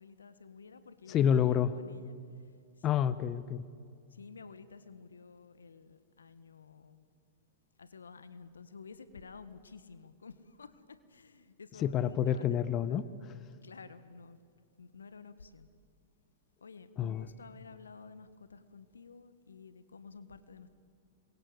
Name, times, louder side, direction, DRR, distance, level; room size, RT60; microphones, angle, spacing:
voice 1, 0.0-2.1 4.1-7.0 7.8-10.3 10.6-10.7 11.1-13.0 13.6-14.4 14.8-15.7 16.6-20.7, left 5 dB, 80° left, 13 dB, 1.6 m, -51 dB
voice 2, 1.1-1.8 2.8-3.6 11.7-13.3 17.0-17.3, left 9 dB, 30° left, 16 dB, 1.0 m, -29 dB
27.0 x 23.0 x 8.2 m, 2.3 s
hypercardioid pair, 105°, 0 cm